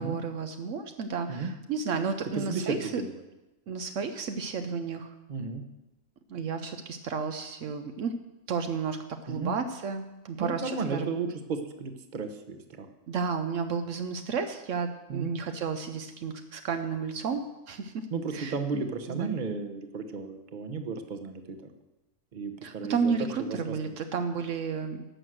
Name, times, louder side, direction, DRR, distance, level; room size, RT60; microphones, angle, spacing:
voice 1, 0.0-3.0 3.7-5.1 6.3-8.2 8.5-11.1 13.1-18.1 18.3-18.5 19.1-19.4 22.6-25.1, right 5 dB, 70° right, 7 dB, 1.0 m, -32 dB
voice 2, 2.3-3.1 5.3-5.6 9.3-9.6 10.4-12.9 15.1-15.3 18.1-21.6 22.3-23.1 23.4-24.0, right 4 dB, 40° right, 7 dB, 1.0 m, -34 dB
11.5 x 6.2 x 7.7 m, 1.0 s
omnidirectional pair, 1.4 m